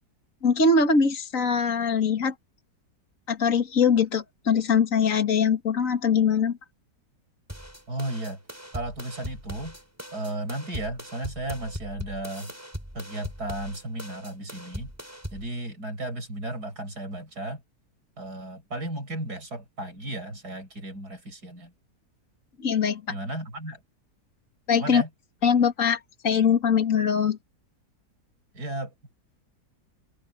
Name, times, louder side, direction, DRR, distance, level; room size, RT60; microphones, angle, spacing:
voice 1, 0.4-2.3 3.3-6.6 22.6-23.0 24.7-25.0 25.4-27.4, left 6 dB, 50° left, 2.5 m, -22 dB
sound 1, 7.5-15.5, equal, 10° right, 7.2 m, -40 dB
voice 2, 7.9-8.4 8.7-9.8 10.1-12.5 12.9-14.9 15.3-17.6 18.2-21.7 23.1-23.8 24.8-25.1 28.5-28.9, right 1 dB, 70° right, 7.2 m, -34 dB
omnidirectional pair, 1.7 m